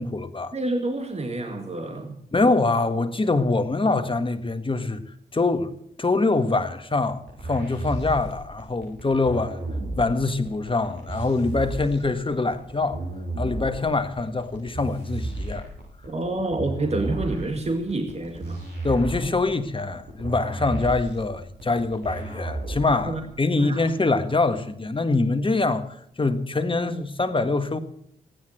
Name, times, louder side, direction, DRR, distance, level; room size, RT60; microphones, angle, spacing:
voice 1, 0.0-0.5 2.3-5.0 5.3-9.6 10.0-13.0 13.4-15.7 18.8-27.8, left 3 dB, 30° left, 1.7 m, -24 dB
voice 2, 0.5-2.2 16.1-18.6 23.0-23.2 23.6-23.9, right 2 dB, 35° right, 2.1 m, -28 dB
sound 1, 7.3-23.2, right 2 dB, 75° right, 7.4 m, -33 dB
15.5 x 9.7 x 7.8 m
supercardioid pair, 40°, 18 cm